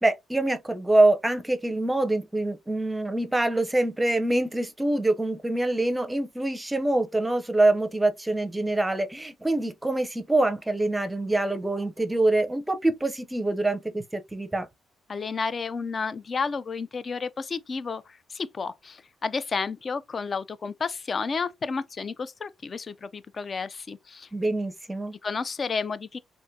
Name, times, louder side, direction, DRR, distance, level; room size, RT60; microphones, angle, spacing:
voice 1, 0.0-14.7 24.3-25.2, right 2 dB, 10° right, 0.6 m, -25 dB
voice 2, 15.1-18.0 18.3-24.3 25.2-26.2, left 5 dB, 40° left, 0.4 m, -31 dB
3.6 x 2.5 x 2.7 m
cardioid pair, 90°, 0 cm